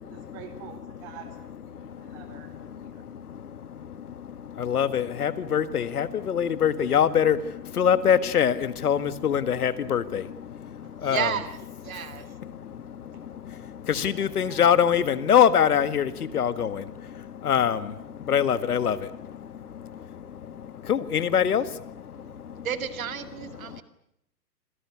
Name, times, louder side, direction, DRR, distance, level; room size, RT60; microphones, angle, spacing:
voice 1, 0.0-3.0 11.9-12.2 13.8-14.6, right 9 dB, 30° right, 10 dB, 4.4 m, -48 dB
voice 2, 4.6-7.4 7.8-8.6 8.8-10.2 11.0-11.3 13.9-16.8 17.5-17.8 18.3-19.0 20.9-21.6, left 8 dB, 65° left, 14 dB, 1.8 m, -22 dB
voice 3, 10.8-11.6 11.8-12.3 22.6-23.8, right 9 dB, 55° right, 11 dB, 2.3 m, -32 dB
26.0 x 17.5 x 9.8 m, 0.78 s
hypercardioid pair, 130°, 49 cm